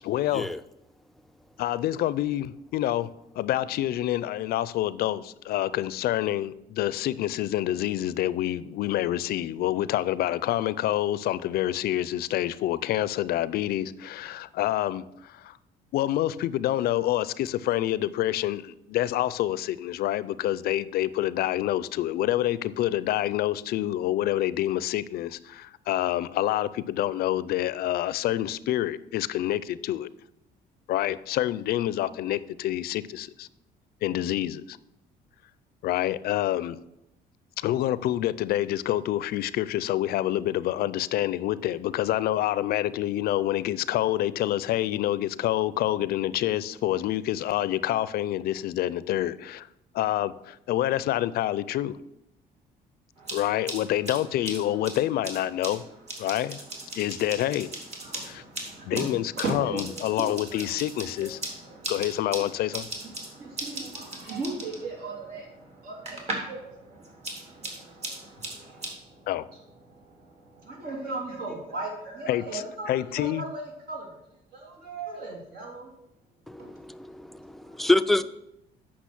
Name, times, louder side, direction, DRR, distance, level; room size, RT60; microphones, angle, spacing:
voice 1, 0.0-0.5 1.6-3.1 3.4-15.6 15.9-30.1 30.9-33.5 34.0-34.8 35.8-36.8 37.6-49.7 49.9-52.0 53.3-55.8 56.2-56.6 57.0-57.7 58.3-58.4 58.9-61.4 61.9-62.9 69.3-69.5 72.3-72.6 72.9-73.4, left 13 dB, 65° left, 0.5 m, -27 dB
sound 1, 53.2-66.6 66.9-68.9, right 2 dB, 40° right, 2.5 m, -39 dB
voice 2, 58.0-60.8 61.0-74.2 74.8-75.9 76.6-76.7 77.6-77.9, right 2 dB, 70° right, 3.1 m, -38 dB
voice 3, 76.5-78.2, left 2 dB, ahead, 0.4 m, -26 dB
8.3 x 6.0 x 6.0 m
cardioid pair, 110°, 17 cm